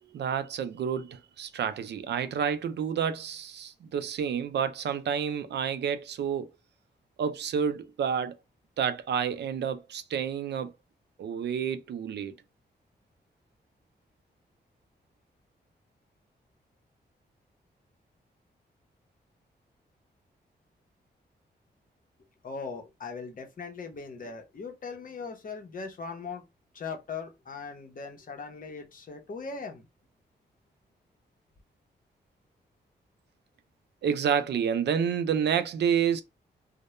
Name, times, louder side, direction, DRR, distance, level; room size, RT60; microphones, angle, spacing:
voice 1, 0.0-6.5 7.2-8.4 8.8-10.7 11.2-12.3 34.0-36.2, right 7 dB, 70° right, 0.4 m, -29 dB
voice 2, 22.4-26.4 26.7-29.9, left 4 dB, 50° left, 0.7 m, -39 dB
2.2 x 2.1 x 2.9 m
cardioid pair, 80°, 18 cm